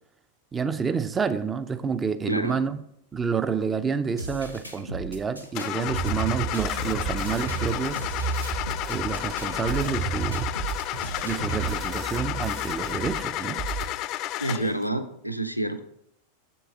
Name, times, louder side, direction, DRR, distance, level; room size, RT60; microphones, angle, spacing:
voice 1, 0.5-2.8 3.1-8.0 8.9-10.5 11.2-13.6, right 6 dB, 20° right, 13 dB, 0.4 m, -29 dB
voice 2, 2.3-2.6 14.4-15.8, right 1 dB, 90° left, 9 dB, 0.5 m, -28 dB
sound 1, 4.2-11.7, right 1 dB, 85° right, 0.8 m, -37 dB
Car / Engine starting, 5.5-14.8, left 15 dB, 40° left, 0.4 m, -32 dB
sound 2, 5.9-13.2 13.5-13.9, right 5 dB, 35° right, 1.0 m, -32 dB
7.0 x 6.9 x 3.6 m, 0.75 s
figure-of-eight pair, 90°, 0 cm